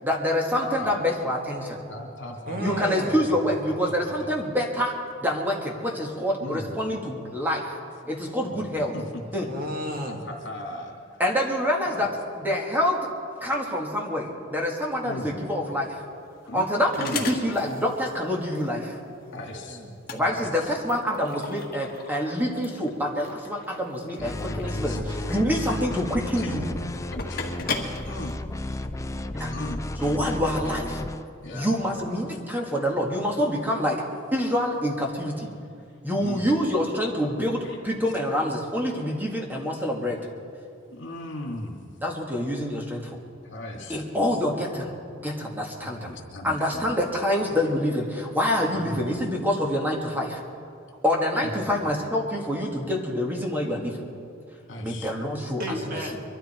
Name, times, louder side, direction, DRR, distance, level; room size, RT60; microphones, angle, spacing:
voice 1, 0.0-1.8 2.6-5.0 5.2-7.7 8.0-8.9 9.3-9.5 11.2-12.1 12.4-13.0 13.4-16.0 16.5-19.0 20.1-24.9 25.3-26.6 29.4-29.5 30.0-31.0 31.5-34.0 34.3-35.5 36.0-40.2 42.0-43.2 43.9-44.9 45.2-46.1 46.4-50.4 51.0-54.1 54.8-55.6, equal, 10° right, 0 dB, 2.0 m, -26 dB
voice 2, 0.6-1.0 1.9-4.3 6.4-6.7 8.9-9.2 10.0-11.2 11.8-12.1 15.0-15.4 16.5-16.7 17.0-17.3 19.3-19.8 20.3-20.7 24.2-25.7 26.4-26.8 27.1-27.7 28.0-28.4 29.5-29.8 31.4-32.1 36.2-36.5 37.6-37.8 40.9-41.8 43.4-44.1 45.8-46.8 48.7-49.1 51.4-51.9 54.7-55.1, left 1 dB, 70° left, 1 dB, 2.5 m, -38 dB
voice 3, 2.5-3.2 8.4-8.7 9.5-10.2 19.2-20.4 24.9-25.5 55.6-56.2, equal, 50° right, 1 dB, 2.0 m, -34 dB
sound 1, 15.7-29.0, left 4 dB, 50° left, 1.6 m, -38 dB
sound 2, 24.2-31.2, left 1 dB, 15° left, 0.5 m, -32 dB
23.5 x 13.0 x 4.5 m, 2.3 s
head